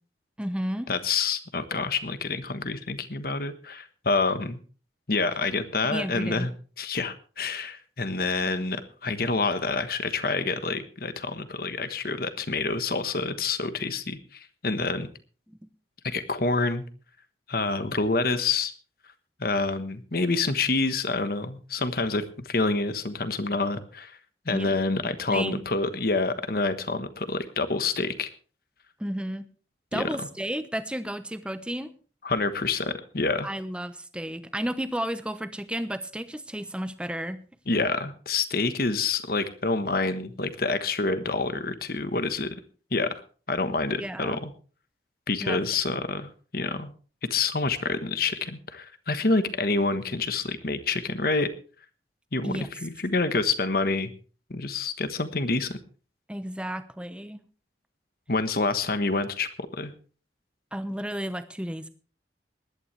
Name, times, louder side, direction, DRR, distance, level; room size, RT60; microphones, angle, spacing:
voice 1, 0.4-0.9 5.8-6.5 15.5-15.6 24.5-24.7 25.3-25.6 29.0-29.5 29.9-31.9 33.4-37.4 44.0-44.4 45.4-45.6 45.9-46.0 52.4-52.7 56.3-57.4 60.7-61.9, equal, 5° right, 11 dB, 0.9 m, -32 dB
voice 2, 0.9-4.6 5.1-6.5 6.8-15.1 16.0-16.8 17.5-18.7 19.4-24.2 24.4-28.3 29.9-30.3 32.2-33.5 37.7-42.5 42.9-43.1 43.5-44.5 45.3-46.9 47.3-51.5 52.3-54.1 54.5-55.8 58.3-59.9, left 3 dB, 55° left, 10 dB, 1.3 m, -27 dB
18.5 x 12.0 x 3.3 m, 0.38 s
head